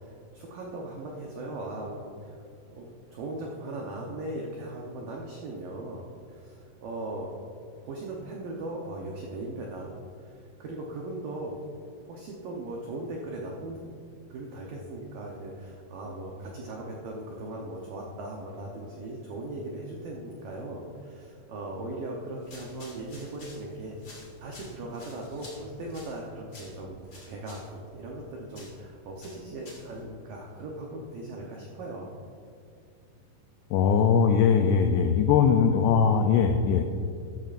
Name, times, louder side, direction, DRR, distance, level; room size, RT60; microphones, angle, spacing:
voice 1, 0.0-2.4 2.7-7.3 7.8-9.9 10.2-11.6 12.0-14.0 14.3-27.0 27.3-32.2, right 2 dB, 90° right, -2 dB, 1.9 m, -38 dB
sound 1, 22.4-30.0, left 1 dB, 35° left, 2.0 m, -51 dB
voice 2, 33.7-36.8, left 6 dB, 90° left, 5 dB, 2.4 m, -21 dB
14.0 x 12.5 x 2.5 m, 2.3 s
omnidirectional pair, 5.5 m